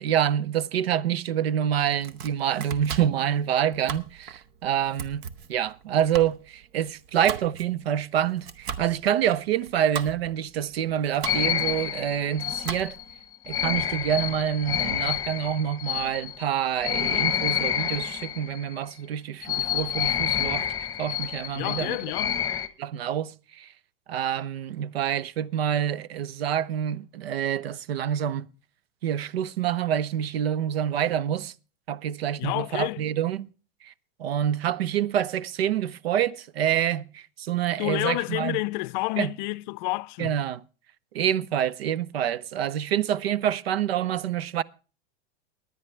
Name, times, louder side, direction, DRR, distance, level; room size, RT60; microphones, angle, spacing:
voice 1, 0.0-13.0 13.5-20.7 21.0-22.0 22.8-23.7 24.1-28.5 29.0-31.5 31.9-33.5 33.8-33.9 34.2-38.6 39.2-39.3 40.2-40.6 41.1-44.6, right 10 dB, 85° right, 0.7 m, -27 dB
Domestic sounds home sounds, 1.8-13.2, right 7 dB, 55° right, 1.1 m, -39 dB
sound 1, 11.2-18.8 19.4-22.7, left 10 dB, 10° left, 1.1 m, -29 dB
voice 2, 21.5-22.4 32.4-33.0 37.8-40.4, left 22 dB, 50° left, 0.5 m, -29 dB
20.0 x 9.7 x 3.2 m
hypercardioid pair, 125°, 30 cm